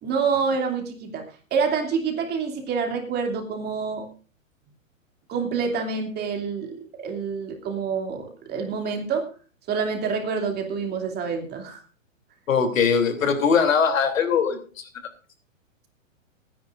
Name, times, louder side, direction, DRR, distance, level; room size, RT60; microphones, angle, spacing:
voice 1, 0.0-4.0 5.3-9.3 9.7-11.8, right 5 dB, 25° right, 3 dB, 2.8 m, -27 dB
voice 2, 12.5-14.9, left 6 dB, 75° left, 5 dB, 3.3 m, -21 dB
22.5 x 10.0 x 2.6 m, 0.37 s
hypercardioid pair, 130°, 40 cm